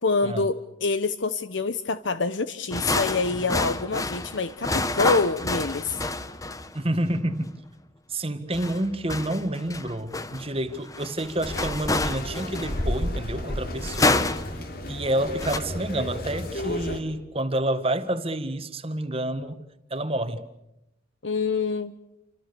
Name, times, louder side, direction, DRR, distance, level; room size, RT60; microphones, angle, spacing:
voice 1, 0.0-6.0 21.2-21.9, left 4 dB, 75° left, 0.9 m, -26 dB
sound 1, 2.7-6.8 8.5-13.0 13.8-14.6 15.2-15.6, left 2 dB, 20° left, 1.0 m, -28 dB
voice 2, 6.7-7.5 8.1-14.3 14.9-19.6 19.9-20.4, right 1 dB, 30° right, 1.7 m, -29 dB
sound 2, 11.4-17.0, equal, 50° left, 3.2 m, -32 dB
29.0 x 26.0 x 6.9 m
head